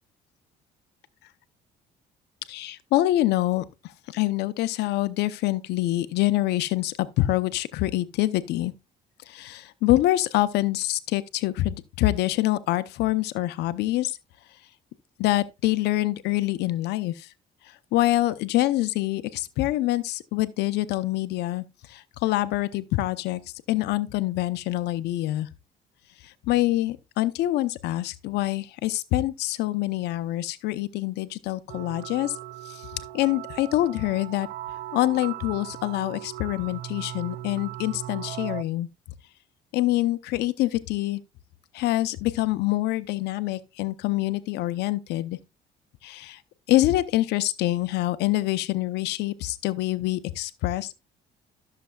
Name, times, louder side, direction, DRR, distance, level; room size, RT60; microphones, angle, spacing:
voice 1, 2.5-3.6 4.1-8.7 9.3-14.2 15.2-17.3 17.9-23.4 23.7-25.5 26.2-32.4 32.7-34.5 34.9-38.9 39.7-41.2 41.7-45.4 46.0-46.4 46.7-50.9, left 16 dB, 80° left, 0.7 m, -25 dB
sound 1, 31.7-38.6, right 13 dB, 65° right, 0.4 m, -38 dB
13.5 x 6.7 x 2.3 m
cardioid pair, 110°, 17 cm